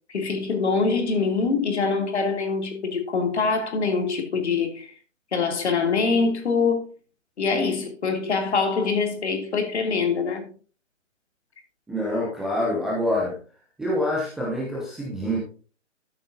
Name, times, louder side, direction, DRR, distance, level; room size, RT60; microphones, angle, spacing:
voice 1, 0.1-4.9 5.3-6.9 7.4-10.5, left 4 dB, 60° left, 2.9 m, -24 dB
voice 2, 11.9-13.4 13.8-15.4, left 1 dB, ahead, 0.5 m, -26 dB
12.5 x 8.7 x 2.7 m
figure-of-eight pair, 140°, 38 cm